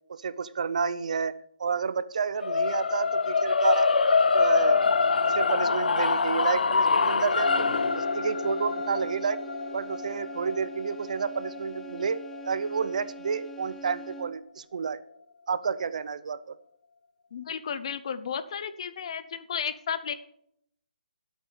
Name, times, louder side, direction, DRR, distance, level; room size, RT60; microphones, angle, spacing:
voice 1, 0.1-1.3 1.6-3.9 4.3-7.7 8.0-9.4 9.7-15.0 15.5-16.6, right 5 dB, 50° right, 16 dB, 0.7 m, -30 dB
sound 1, 2.4-12.6, left 4 dB, 80° left, 0.9 m, -25 dB
sound 2, 7.4-14.5, right 3 dB, 5° left, 0.7 m, -43 dB
voice 2, 17.3-20.1, left 7 dB, 40° left, 13 dB, 0.8 m, -33 dB
12.0 x 8.2 x 5.1 m, 0.71 s
hypercardioid pair, 170°, 5 cm